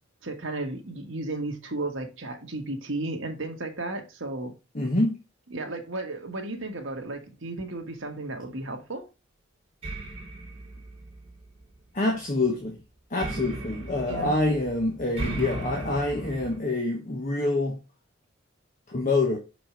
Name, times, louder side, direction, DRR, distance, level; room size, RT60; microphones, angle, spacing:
voice 1, 0.2-4.5 5.5-9.1 14.0-14.3, right 2 dB, 70° right, 1.7 m, -34 dB
voice 2, 4.7-5.2 11.9-12.8 13.1-17.7 18.9-19.4, left 2 dB, 40° left, 1.3 m, -26 dB
sound 1, 9.8-11.8 13.2-16.6, right 1 dB, 30° right, 2.6 m, -37 dB
6.2 x 5.0 x 4.5 m
head